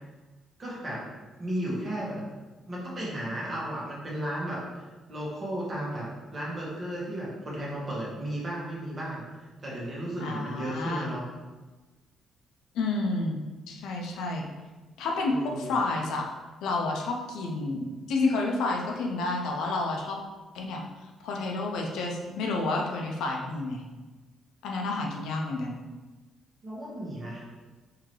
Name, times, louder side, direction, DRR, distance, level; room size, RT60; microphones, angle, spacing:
voice 1, 0.6-1.1 1.4-2.2 2.7-4.6 5.1-9.2 9.6-11.2 15.3-15.7 26.6-27.4, right 1 dB, 35° right, -5 dB, 1.4 m, -34 dB
voice 2, 10.2-11.1 12.7-13.4 13.7-14.5 15.0-16.3 16.6-20.2 20.5-23.8 24.6-25.8, left 3 dB, 85° left, 0 dB, 0.5 m, -30 dB
3.7 x 2.7 x 3.1 m, 1.2 s
cardioid pair, 90°, 0 cm